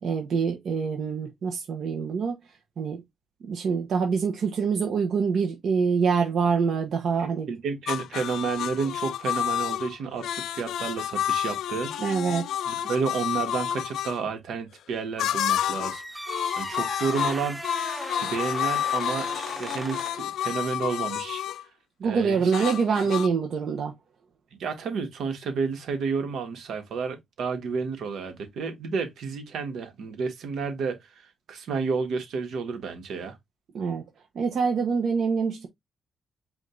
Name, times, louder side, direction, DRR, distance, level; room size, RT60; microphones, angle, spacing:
voice 1, 0.0-2.4 2.8-3.0 3.5-7.5 12.0-12.6 22.0-23.9 33.7-34.1 34.3-35.7, right 5 dB, 70° right, 0.9 m, -25 dB
voice 2, 7.2-11.9 12.7-16.2 16.6-17.6 18.1-21.4 22.0-22.5 24.5-33.4, right 5 dB, 85° right, 1.5 m, -31 dB
sound 1, 7.9-14.2 15.2-16.0 16.3-21.6 22.5-23.3, left 11 dB, 90° left, 0.3 m, -30 dB
sound 2, 15.9-20.3, right 1 dB, 10° right, 0.6 m, -38 dB
5.1 x 2.5 x 3.8 m
cardioid pair, 90°, 0 cm